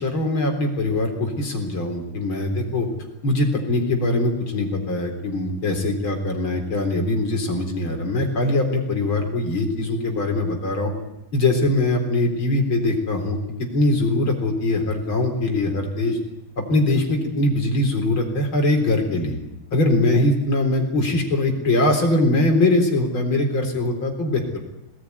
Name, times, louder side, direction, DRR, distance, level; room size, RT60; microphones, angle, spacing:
voice 1, 0.0-2.9 3.2-10.9 11.3-16.2 16.7-19.4 19.7-24.6, left 2 dB, 75° left, 3 dB, 4.7 m, -22 dB
23.0 x 18.5 x 9.6 m, 0.92 s
omnidirectional pair, 2.2 m